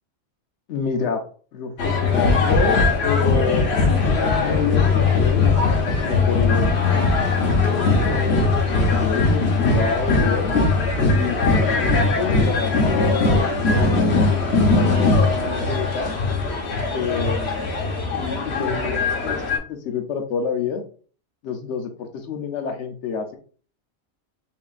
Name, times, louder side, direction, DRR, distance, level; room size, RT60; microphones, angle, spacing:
voice 1, 0.7-1.2 1.5-5.5 6.1-6.7 7.6-10.5 11.1-16.2 16.9-17.7 18.2-19.4 19.7-20.8 21.4-23.4, left 5 dB, 85° left, 4 dB, 1.0 m, -28 dB
sound 1, 1.8-19.6, left 3 dB, 65° left, 1.1 m, -20 dB
5.5 x 2.5 x 2.4 m, 0.41 s
omnidirectional pair, 1.2 m